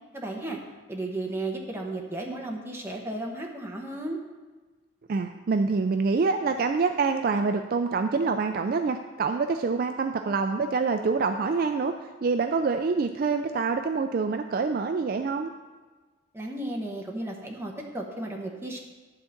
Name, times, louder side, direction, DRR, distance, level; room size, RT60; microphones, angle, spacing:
voice 1, 0.1-0.6 0.9-4.2 16.3-18.8, right 2 dB, 10° right, 0 dB, 1.0 m, -34 dB
voice 2, 5.1-11.9 12.2-15.5, right 4 dB, 45° right, 6 dB, 0.3 m, -26 dB
11.5 x 3.8 x 7.1 m, 1.3 s
head